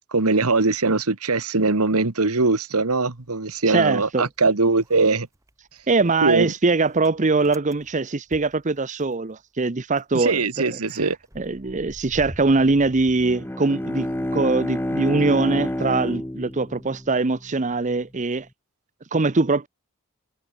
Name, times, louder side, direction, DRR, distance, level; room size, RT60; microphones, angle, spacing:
voice 1, 0.1-5.3 6.2-6.5 10.1-11.2, right 3 dB, 80° right, 1.6 m, -21 dB
Motor vehicle (road) / Engine starting, 3.2-4.4 4.7-9.3 9.6-9.7 10.0-14.1, equal, 15° right, 5.4 m, -46 dB
voice 2, 3.7-4.3 5.9-14.1 14.3-18.5 19.1-19.7, right 3 dB, 35° right, 0.7 m, -22 dB
Bowed string instrument, 13.2-17.8, left 1 dB, 10° left, 0.7 m, -29 dB
head